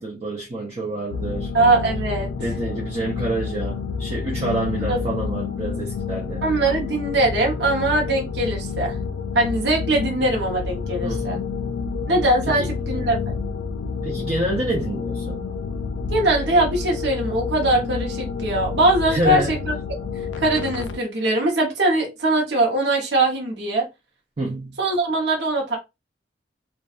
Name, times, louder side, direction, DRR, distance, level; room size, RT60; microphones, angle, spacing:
voice 1, 0.0-1.5 2.4-6.4 11.0-11.4 12.5-12.7 14.0-15.4 19.1-19.5 24.4-24.8, right 2 dB, 30° right, 0.5 m, -27 dB
sound 1, 1.1-21.0, left 5 dB, 75° left, 0.3 m, -29 dB
voice 2, 1.5-2.3 4.9-5.0 6.4-9.0 9.3-11.4 12.1-13.3 16.1-19.7 20.4-23.9 24.8-25.8, right 2 dB, 65° right, 0.8 m, -21 dB
2.6 x 2.2 x 2.3 m
head